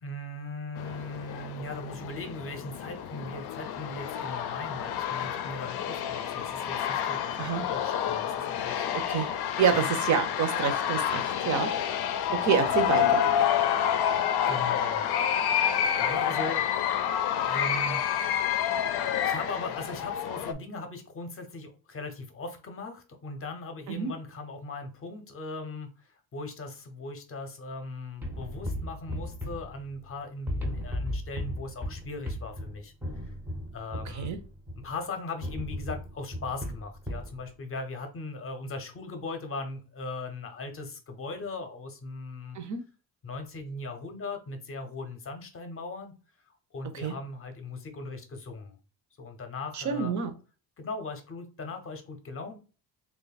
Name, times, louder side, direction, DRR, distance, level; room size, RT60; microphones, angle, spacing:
voice 1, 0.0-8.8 9.7-9.9 14.5-15.1 16.0-16.7 17.4-18.0 19.2-32.9 33.2-33.3 33.7-34.3 34.8-42.6 43.2-46.2 46.5-48.8 49.2-50.1 50.8-52.6, left 3 dB, 35° left, 6 dB, 0.6 m, -39 dB
sound 1, 0.8-20.5, left 9 dB, 70° left, 0.5 m, -29 dB
voice 2, 9.6-11.7 12.4-13.0 23.9-24.1 34.2-34.4 42.5-42.8 47.0-47.1 49.9-50.3, right 7 dB, 45° right, 8 dB, 0.6 m, -27 dB
sound 2, 28.2-30.1 30.5-34.9 35.4-37.4, left 1 dB, 5° right, 0.5 m, -36 dB
3.0 x 2.3 x 4.0 m, 0.35 s
cardioid pair, 155°, 40 cm